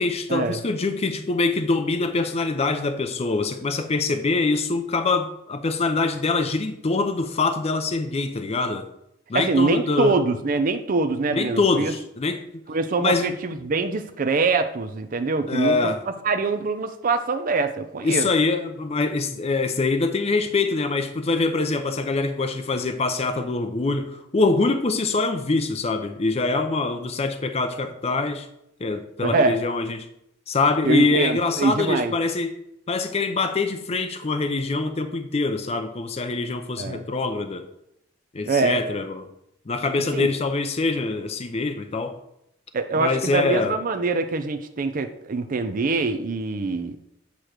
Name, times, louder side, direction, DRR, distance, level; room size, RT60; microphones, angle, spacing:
voice 1, 0.0-8.9 9.3-10.2 11.3-12.4 13.0-13.3 15.5-16.0 18.0-28.5 28.8-30.1 30.5-32.6 32.9-37.7 38.3-39.3 39.7-42.2 42.9-43.8, left 3 dB, 30° left, 7 dB, 0.5 m, -24 dB
voice 2, 9.3-11.9 12.7-15.8 16.2-18.3 29.2-29.6 30.8-32.1 36.8-37.0 38.5-38.8 40.1-40.3 42.7-47.0, right 3 dB, 45° right, 8 dB, 0.5 m, -24 dB
8.3 x 3.0 x 6.3 m, 0.79 s
head